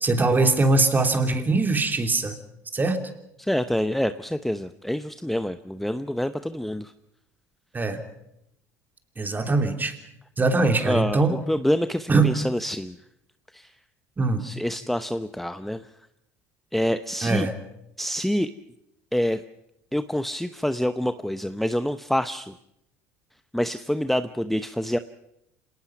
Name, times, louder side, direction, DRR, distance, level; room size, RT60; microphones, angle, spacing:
voice 1, 0.0-2.4 2.7-3.0 7.7-8.0 9.2-9.9 10.4-11.3 12.1-12.3 14.2-14.4 17.2-17.5, right 3 dB, 25° right, 6 dB, 3.1 m, -22 dB
voice 2, 3.4-6.9 10.7-13.0 13.5-13.7 14.4-15.9 16.7-17.5 18.0-18.5 19.1-19.4 19.9-22.6 23.5-25.0, equal, ahead, 11 dB, 0.8 m, -26 dB
26.5 x 18.5 x 6.0 m, 0.79 s
hypercardioid pair, 70°, 8 cm